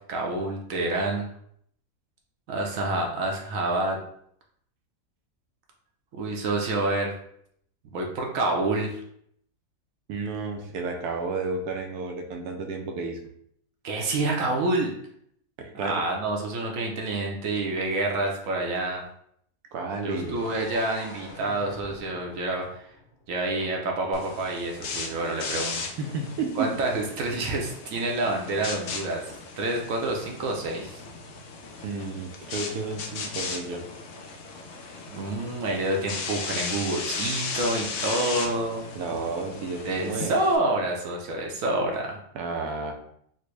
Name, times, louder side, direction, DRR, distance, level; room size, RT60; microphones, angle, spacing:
voice 1, 0.1-1.3 2.5-4.0 6.1-7.1 7.8-9.0 13.8-14.9 15.7-19.0 20.0-22.9 23.3-25.9 26.6-31.0 35.1-38.8 39.8-42.2, right 2 dB, 70° right, 1 dB, 0.9 m, -28 dB
voice 2, 10.1-13.2 15.6-16.0 19.7-20.4 26.0-26.7 31.8-33.8 39.0-40.3 42.3-43.0, right 4 dB, 85° right, 3 dB, 1.2 m, -32 dB
sound 1, 20.1-23.9, left 2 dB, 85° left, 1.3 m, -45 dB
sound 2, 24.1-40.6, left 4 dB, 65° left, 0.7 m, -36 dB
4.2 x 2.1 x 3.1 m, 0.69 s
omnidirectional pair, 1.6 m